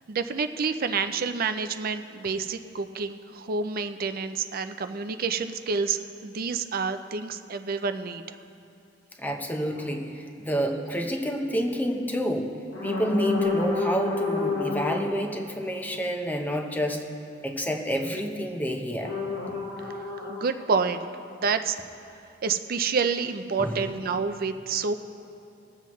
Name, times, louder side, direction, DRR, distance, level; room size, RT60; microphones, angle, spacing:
voice 1, 0.1-8.4 20.3-21.1 21.3-21.8 22.4-24.9, right 5 dB, 50° right, 9 dB, 0.5 m, -28 dB
voice 2, 9.2-12.5 12.8-17.0 17.4-19.1 23.6-23.8, equal, 10° left, 3 dB, 0.9 m, -29 dB
sound 1, 9.8-9.9 10.9-11.1 12.7-15.2 19.0-21.1, left 3 dB, 85° left, 1.4 m, -29 dB
22.0 x 7.6 x 3.1 m, 2.8 s
head